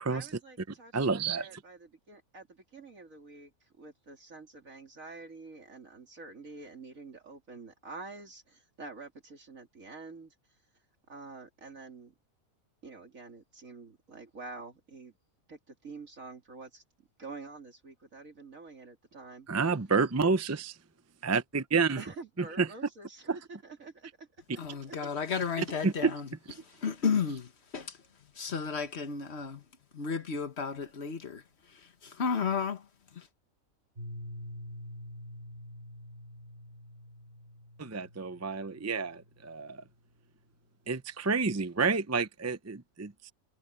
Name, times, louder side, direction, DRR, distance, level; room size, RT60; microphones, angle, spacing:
voice 1, 0.1-10.3 11.1-12.1 12.8-15.1 15.5-19.5 22.0-24.9, right 3 dB, 70° right, 3.2 m, -48 dB
voice 2, 0.9-1.5 19.5-20.8 21.2-22.0 22.6-22.7 23.3-23.4 25.8-26.1 37.8-39.8 40.9-43.3, right 4 dB, 20° right, 0.5 m, -29 dB
voice 3, 24.6-26.3 26.8-28.0 28.3-29.6 29.9-33.3, left 6 dB, 50° left, 1.6 m, -33 dB
Piano, 34.0-39.6, left 1 dB, 45° right, 2.1 m, -46 dB
omnidirectional pair, 1.5 m